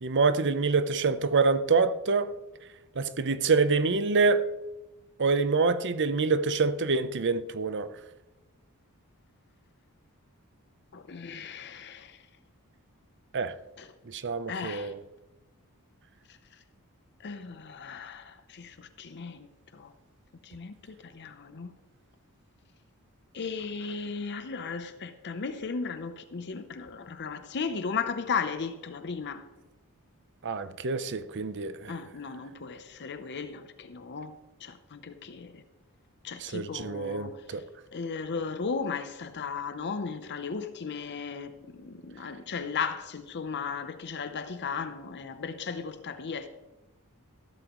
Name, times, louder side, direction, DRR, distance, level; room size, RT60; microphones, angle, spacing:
voice 1, 0.0-2.3 3.0-4.4 5.2-7.9 13.3-13.5 14.1-15.0 30.4-32.0 36.4-37.6, right 4 dB, 55° right, 0.7 m, -26 dB
voice 2, 10.9-12.2 13.8-13.9 14.5-14.9 17.2-19.5 19.7-19.9 20.4-21.7 23.3-29.4 31.9-34.3 34.6-35.6 36.2-37.4 37.9-46.5, left 5 dB, 50° left, 0.7 m, -36 dB
15.0 x 13.0 x 3.1 m
head